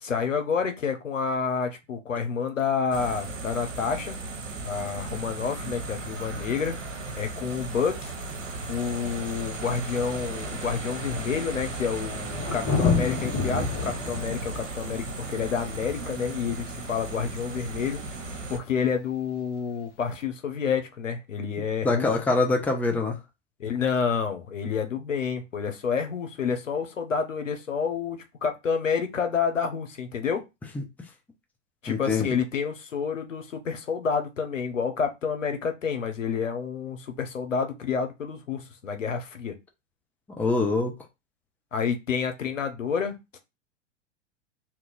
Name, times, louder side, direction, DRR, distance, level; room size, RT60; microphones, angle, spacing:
voice 1, 0.0-4.2 4.6-6.8 7.1-8.1 8.7-18.1 18.5-22.1 23.6-30.4 31.8-39.5 41.7-43.4, left 6 dB, 90° left, 0.9 m, -29 dB
sound 1, 2.9-18.6, right 3 dB, 90° right, 0.8 m, -36 dB
Thunder, 8.3-8.4 9.4-9.5 9.7-17.0 18.7-18.8, left 5 dB, 35° left, 1.2 m, -31 dB
voice 2, 21.8-23.2 31.9-32.4 40.4-40.9, left 3 dB, 5° left, 0.5 m, -24 dB
2.9 x 2.4 x 3.8 m
hypercardioid pair, 100°, 37 cm